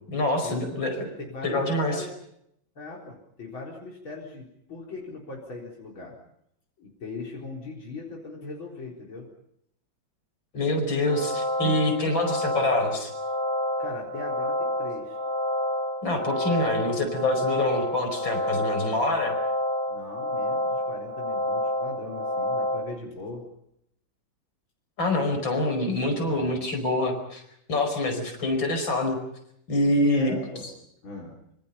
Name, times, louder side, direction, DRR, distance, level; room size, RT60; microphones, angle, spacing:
voice 1, 0.1-1.1 1.4-2.0 10.5-13.1 16.0-19.3 25.0-27.4 27.7-29.2 29.7-30.3, left 1 dB, 75° left, 5 dB, 5.8 m, -26 dB
voice 2, 1.3-2.1 2.7-6.2 6.8-9.3 13.8-15.2 19.9-23.5 26.2-26.6 30.1-30.7 31.0-31.3, left 3 dB, 90° left, -2 dB, 5.0 m, -39 dB
sound 1, 11.0-22.8, left 1 dB, 25° right, 3.5 m, -29 dB
26.5 x 26.0 x 5.7 m, 0.75 s
omnidirectional pair, 2.1 m